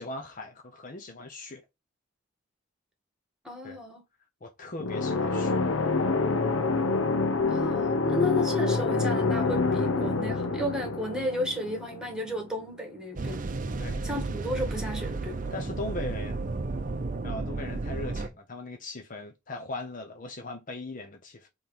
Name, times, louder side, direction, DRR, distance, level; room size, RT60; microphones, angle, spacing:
voice 1, 0.0-1.6 3.6-3.8 4.4-5.6 13.8-14.0 15.5-16.4 17.2-21.5, left 2 dB, 40° left, 0.8 m, -39 dB
voice 2, 3.4-4.0 7.5-13.5 14.0-15.4, left 1 dB, 5° right, 1.8 m, -33 dB
sound 1, 4.8-12.5, left 3 dB, 75° left, 0.8 m, -27 dB
sound 2, 13.2-18.3, right 3 dB, 40° right, 0.6 m, -33 dB
5.7 x 3.2 x 5.1 m
head